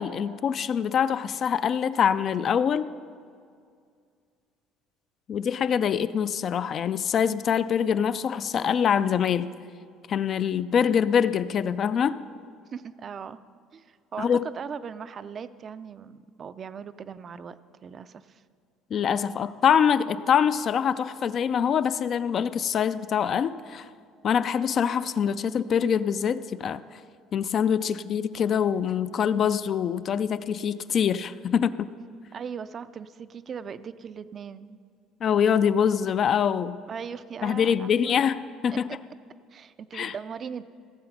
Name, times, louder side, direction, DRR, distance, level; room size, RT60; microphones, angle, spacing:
voice 1, 0.0-2.9 5.3-9.5 10.1-12.2 14.2-14.4 18.9-23.9 24.2-26.8 27.3-31.8 35.2-36.8 37.4-38.9 39.9-40.1, left 8 dB, 40° left, 14 dB, 0.3 m, -24 dB
voice 2, 12.7-13.4 13.7-18.4 32.3-34.8 36.9-38.2 38.7-39.0 39.5-40.6, right 6 dB, 30° right, 14 dB, 0.4 m, -39 dB
16.5 x 7.7 x 5.8 m, 2.2 s
cardioid pair, 150°, 0 cm